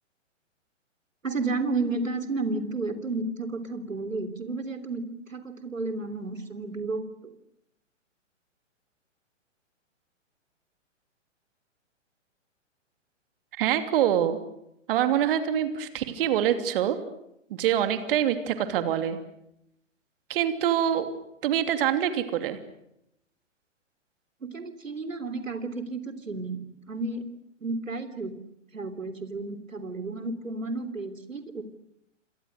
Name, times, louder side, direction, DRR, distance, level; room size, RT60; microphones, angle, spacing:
voice 1, 1.2-7.3 24.4-27.2 27.6-28.4 28.7-31.6, right 3 dB, 90° right, 10 dB, 3.4 m, -32 dB
voice 2, 13.6-14.4 14.9-17.0 17.6-19.2 20.3-21.1 21.4-22.6, right 10 dB, 45° right, 9 dB, 3.0 m, -25 dB
29.0 x 27.0 x 6.6 m, 0.80 s
figure-of-eight pair, 125°, 38 cm